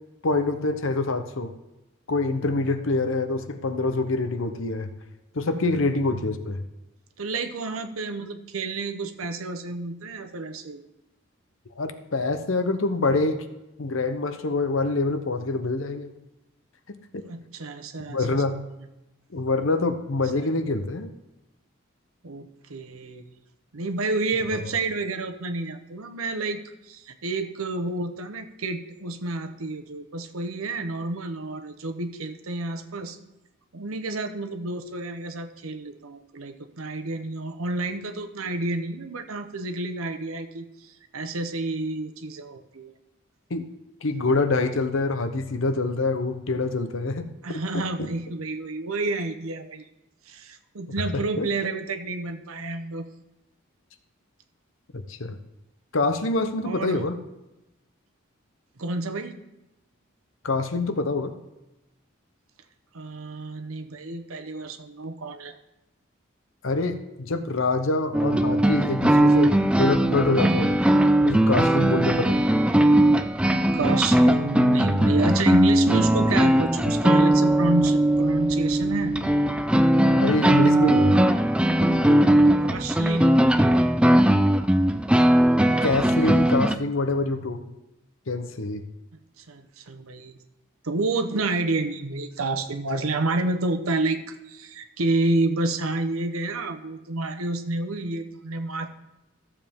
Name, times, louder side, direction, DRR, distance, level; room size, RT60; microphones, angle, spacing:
voice 1, 0.2-1.5 2.1-4.9 5.3-6.6 11.8-13.4 13.8-16.1 16.9-17.3 18.1-18.6 19.3-21.1 43.5-43.6 44.0-47.3 51.1-51.5 54.9-55.4 55.9-57.2 60.4-61.3 66.6-70.7 71.2-72.4 80.2-81.2 82.1-82.2 85.8-87.7 88.3-88.8, left 3 dB, 70° left, 9 dB, 0.8 m, -25 dB
voice 2, 7.2-10.8 17.3-18.4 20.3-20.5 22.2-23.2 23.7-33.2 33.7-42.9 47.4-49.9 50.3-53.1 56.6-57.0 58.8-59.4 62.9-65.5 73.7-79.1 82.6-83.3 89.4-90.4 90.8-98.9, right 2 dB, 85° right, 9 dB, 0.9 m, -29 dB
sound 1, 68.1-86.8, right 1 dB, 5° right, 0.3 m, -19 dB
14.0 x 7.2 x 3.6 m, 0.96 s
head